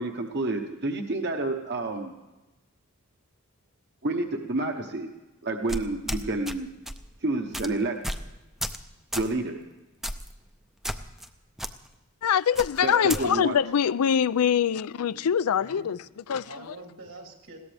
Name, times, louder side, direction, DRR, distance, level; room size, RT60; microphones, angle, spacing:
voice 1, 0.0-2.1 4.0-5.1 5.4-6.7 7.2-7.9 9.1-9.6 12.8-13.5, right 2 dB, 50° right, 1.0 m, -29 dB
sound 1, 5.7-6.6 6.9-7.1 7.5-7.7 8.0-8.3 8.6-8.8 9.1-9.3 10.0-10.3 10.8-11.3 11.6-11.7 12.6-13.2, equal, ahead, 0.5 m, -32 dB
voice 2, 12.2-16.8, left 8 dB, 85° left, 0.4 m, -24 dB
voice 3, 12.9-13.4 15.0-15.2 15.6-15.9 16.4-17.6, right 2 dB, 75° right, 3.5 m, -45 dB
20.5 x 17.0 x 3.4 m
head